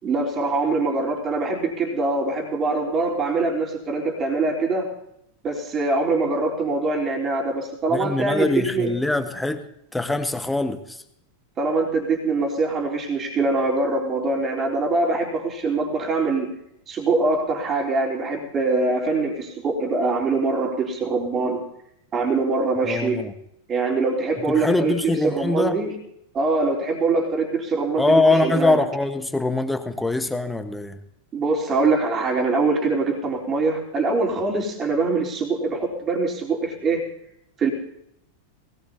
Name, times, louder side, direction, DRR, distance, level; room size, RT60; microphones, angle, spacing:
voice 1, 0.0-4.9 5.4-9.0 11.6-16.5 16.9-21.6 22.1-23.2 23.7-26.0 26.3-28.8 31.3-37.1 37.6-37.7, right 3 dB, 25° right, 0 dB, 3.6 m, -23 dB
voice 2, 7.9-9.7 9.9-11.0 22.8-23.3 24.5-25.8 28.0-31.0, left 2 dB, 5° left, 9 dB, 1.3 m, -23 dB
20.5 x 19.0 x 2.8 m, 0.76 s
figure-of-eight pair, 90°, 0 cm